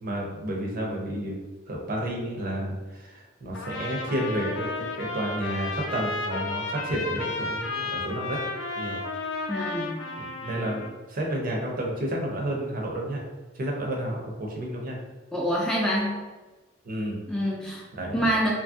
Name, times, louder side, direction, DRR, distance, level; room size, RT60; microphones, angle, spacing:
voice 1, 0.0-1.3 1.7-8.4 8.8-9.0 10.2-10.8 11.1-13.2 13.6-15.0 16.8-17.2 18.0-18.2, right 1 dB, 45° right, -1 dB, 0.5 m, -31 dB
Trumpet, 3.5-10.9, left 3 dB, 75° left, 0.4 m, -33 dB
voice 2, 9.5-9.9 15.3-16.2 17.3-17.8 18.1-18.5, equal, 5° left, -4 dB, 0.3 m, -26 dB
3.1 x 2.5 x 2.4 m, 1.2 s
head